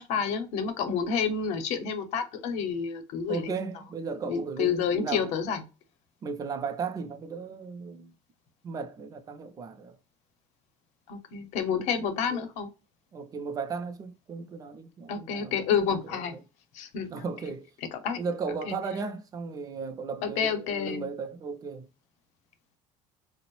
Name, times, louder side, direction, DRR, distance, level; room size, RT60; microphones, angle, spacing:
voice 1, 0.0-3.6 4.2-5.6 11.1-12.7 15.1-16.3 16.7-17.1 17.9-18.2 18.7-18.8 20.2-21.1, left 6 dB, 70° left, 0.7 m, -29 dB
voice 2, 3.3-5.3 6.2-8.1 8.6-10.0 12.3-12.4 13.1-15.6 15.9-16.2 17.1-17.7 18.2-21.9, right 5 dB, 30° right, 0.4 m, -35 dB
3.5 x 2.1 x 3.0 m
cardioid pair, 125°, 12 cm